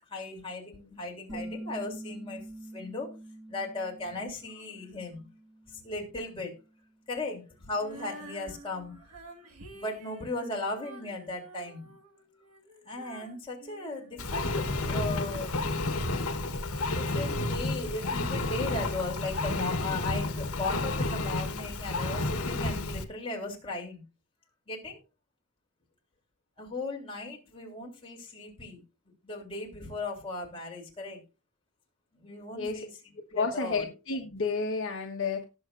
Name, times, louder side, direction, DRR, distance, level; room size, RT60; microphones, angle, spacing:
voice 1, 0.1-2.4 2.7-3.1 3.5-5.2 5.7-6.6 7.1-9.1 9.7-11.9 12.8-15.5 16.2-16.3 16.8-24.0 24.7-25.0 26.6-28.8 29.2-31.2 32.2-33.9, left 2 dB, 25° left, 3.3 m, -37 dB
sound 1, 1.3-6.7, right 1 dB, ahead, 1.6 m, -45 dB
Female singing, 7.8-14.8, right 1 dB, 85° right, 1.8 m, -50 dB
Engine, 14.2-23.0, left 2 dB, 85° left, 1.3 m, -31 dB
voice 2, 32.5-32.9 33.3-35.4, left 4 dB, 60° left, 1.4 m, -31 dB
18.5 x 6.5 x 2.6 m
head